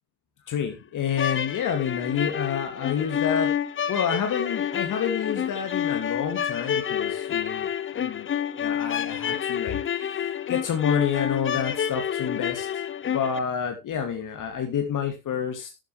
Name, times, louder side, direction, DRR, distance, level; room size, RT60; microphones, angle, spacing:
voice 1, 0.5-3.5 3.9-7.7 8.0-8.3 8.6-9.8 10.5-12.7 13.0-15.7, left 7 dB, 45° left, 5 dB, 2.7 m, -28 dB
sound 1, 1.1-13.4, left 9 dB, 30° left, 1.0 m, -29 dB
11.0 x 9.2 x 3.4 m, 0.24 s
hypercardioid pair, 75°, 44 cm